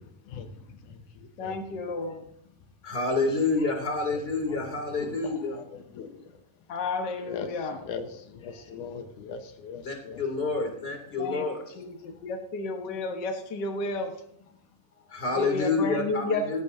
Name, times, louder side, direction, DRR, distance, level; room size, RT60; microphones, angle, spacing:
voice 1, 0.0-1.8 4.1-4.2 4.5-6.7 7.2-10.6 12.0-12.3, left 6 dB, 75° left, 2.5 m, -42 dB
voice 2, 1.4-2.2 6.7-7.8 11.2-11.4 11.7-14.1 15.3-16.6, left 2 dB, 60° left, 1.1 m, -32 dB
voice 3, 2.8-5.6 9.8-11.8 15.1-16.6, left 3 dB, 20° left, 2.6 m, -28 dB
16.5 x 14.5 x 2.7 m
omnidirectional pair, 3.7 m